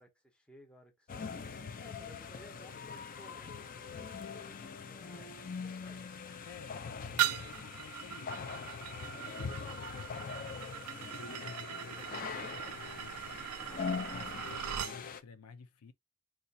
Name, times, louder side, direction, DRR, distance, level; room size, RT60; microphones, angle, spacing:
voice 1, 0.0-6.1, equal, 5° left, 0.7 m, -59 dB
sound 1, 1.1-15.2, left 5 dB, 40° left, 0.4 m, -42 dB
voice 2, 6.4-15.9, left 5 dB, 90° left, 0.5 m, -53 dB
sound 2, 7.2-15.0, right 12 dB, 85° right, 0.4 m, -39 dB
4.1 x 2.4 x 2.6 m
head